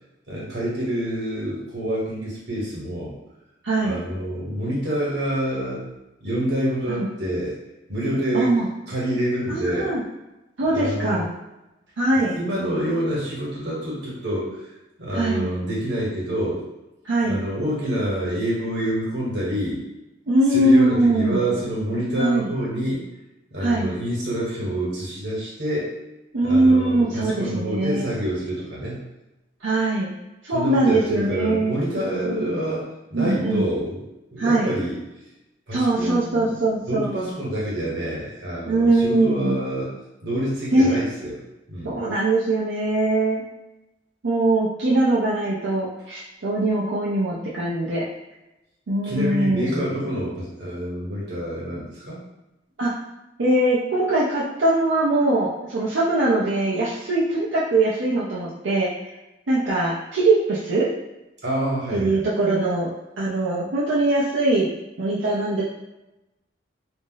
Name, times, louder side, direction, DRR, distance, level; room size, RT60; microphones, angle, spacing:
voice 1, 0.3-3.1 3.8-5.9 6.2-7.6 7.9-8.5 8.9-9.9 10.7-11.3 12.1-14.6 15.0-16.6 17.2-19.8 20.5-23.0 23.5-25.9 26.4-29.1 30.5-32.9 33.1-34.0 34.3-35.0 35.7-36.6 36.9-39.9 40.2-41.3 41.7-42.0 49.0-52.2 61.4-62.2, right 1 dB, 65° right, -6 dB, 1.1 m, -27 dB
voice 2, 3.6-4.0 6.9-7.1 8.3-8.7 9.5-10.0 10.6-11.3 12.0-12.4 15.1-15.5 17.0-17.4 20.3-21.5 22.2-22.5 23.6-23.9 26.3-28.1 29.6-30.1 30.5-31.7 33.1-33.7 34.4-34.7 35.7-37.2 38.7-39.6 40.7-40.9 41.8-43.4 44.2-48.0 48.9-49.9 52.8-52.9 53.4-58.9 59.5-60.9 61.9-62.9 63.2-64.7 65.0-65.6, right 2 dB, 85° right, -8 dB, 0.6 m, -21 dB
2.5 x 2.0 x 3.8 m, 0.96 s
head